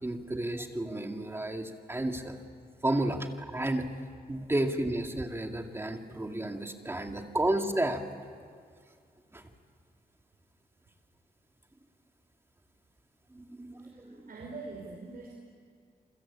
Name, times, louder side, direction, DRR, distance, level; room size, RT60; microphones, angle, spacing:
voice 1, 0.0-2.4 2.8-3.9 4.3-8.0 9.3-9.4 13.3-14.3, right 1 dB, 15° right, 4 dB, 2.2 m, -32 dB
voice 2, 13.8-15.3, right 3 dB, 70° right, -1 dB, 5.7 m, -44 dB
29.0 x 23.5 x 8.7 m, 2.2 s
wide cardioid pair, 140°, 16 cm